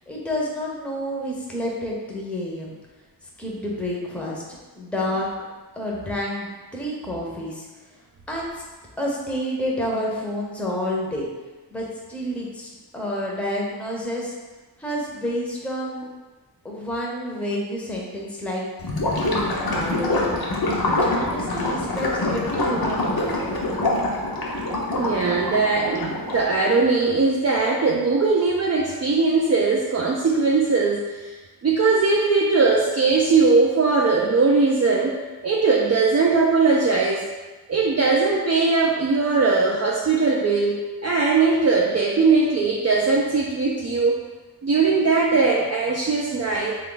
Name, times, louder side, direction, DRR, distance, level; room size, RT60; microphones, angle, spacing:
voice 1, 0.0-2.7 3.4-4.4 4.8-5.3 5.8-7.7 8.3-8.6 9.0-11.3 11.7-14.3 14.8-16.1 16.6-18.6 19.1-23.5, left 1 dB, 5° left, -3 dB, 0.7 m, -29 dB
Gurgling / Liquid, 18.8-26.5, left 1 dB, 60° left, 0.7 m, -25 dB
voice 2, 24.9-31.3 31.6-37.2 37.7-44.2 44.6-46.8, right 4 dB, 40° right, -3 dB, 0.4 m, -20 dB
3.3 x 2.4 x 3.8 m, 1.2 s
wide cardioid pair, 60°, 40 cm